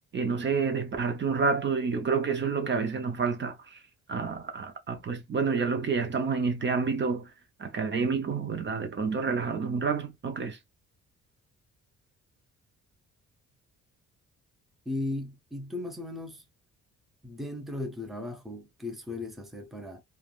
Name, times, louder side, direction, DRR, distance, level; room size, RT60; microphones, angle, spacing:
voice 1, 0.1-3.8 4.1-7.3 7.6-10.6, right 5 dB, 40° right, 0.7 m, -29 dB
voice 2, 14.9-16.4 17.2-20.0, left 2 dB, ahead, 0.7 m, -36 dB
3.4 x 2.3 x 2.4 m
cardioid pair, 90°, 30 cm